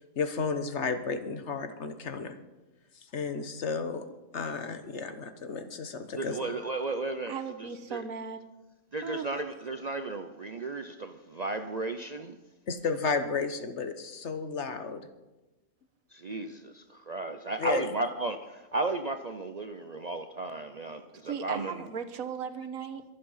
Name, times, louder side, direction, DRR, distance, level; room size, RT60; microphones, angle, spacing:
voice 1, 0.1-2.4 3.1-4.0 4.3-6.4 12.7-15.1 17.6-17.9, left 5 dB, 60° left, 9 dB, 1.3 m, -32 dB
voice 2, 6.2-8.0 8.9-12.4 16.1-21.9, right 2 dB, 45° right, 8 dB, 0.6 m, -34 dB
voice 3, 7.3-8.4 9.0-9.3 21.2-23.0, right 6 dB, 85° right, 8 dB, 1.5 m, -37 dB
23.0 x 7.7 x 5.6 m, 1.1 s
omnidirectional pair, 1.4 m